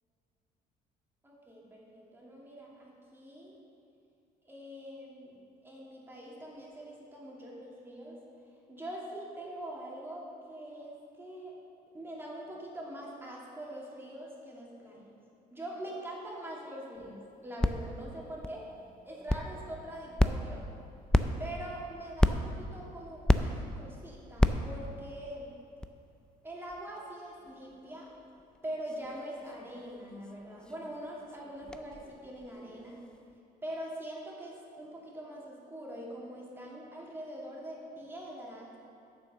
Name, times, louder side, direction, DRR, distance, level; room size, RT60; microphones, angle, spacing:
voice 1, 1.2-3.6 4.4-8.2 8.7-11.6 11.9-15.1 15.5-18.7 19.0-20.6 21.4-25.5 26.4-28.1 28.6-33.0 33.6-38.7, right 1 dB, 15° right, -4 dB, 2.6 m, -43 dB
sound 1, 16.9-33.4, left 1 dB, 5° left, 0.4 m, -34 dB
9.1 x 7.1 x 6.7 m, 2.7 s
cardioid pair, 110°, 17 cm